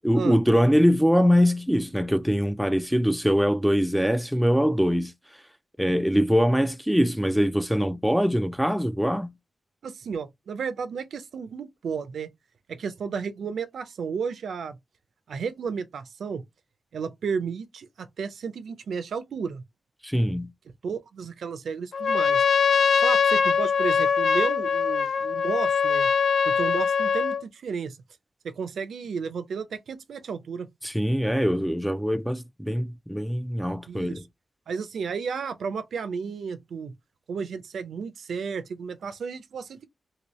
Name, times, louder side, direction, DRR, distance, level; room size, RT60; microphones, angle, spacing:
voice 1, 0.0-5.1 5.8-9.3 20.0-20.5 30.8-34.2, equal, ahead, 0.3 m, -23 dB
voice 2, 9.8-12.3 12.7-14.8 15.3-16.4 16.9-19.6 20.8-22.4 23.0-26.1 26.5-28.0 28.6-30.7 33.9-34.2 34.7-36.9 37.3-39.9, right 6 dB, 85° right, 0.5 m, -33 dB
Trumpet, 21.9-27.4, left 6 dB, 75° left, 0.4 m, -22 dB
2.9 x 2.8 x 3.0 m
wide cardioid pair, 95°, 0 cm